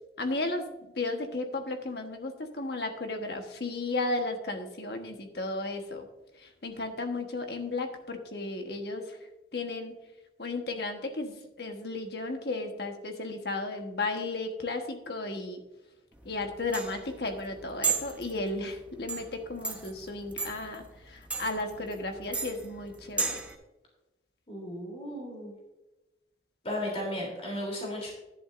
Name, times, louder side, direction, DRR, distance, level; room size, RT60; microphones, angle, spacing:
voice 1, 0.2-6.1 6.4-9.2 9.5-9.9 10.4-15.6 16.2-23.4, left 2 dB, 60° left, 5 dB, 1.3 m, -34 dB
sound 1, 16.2-23.5, right 4 dB, 10° right, 0.8 m, -35 dB
voice 2, 24.5-25.5 26.6-28.1, left 1 dB, 35° left, -1 dB, 3.3 m, -35 dB
11.5 x 10.5 x 2.6 m, 1.0 s
head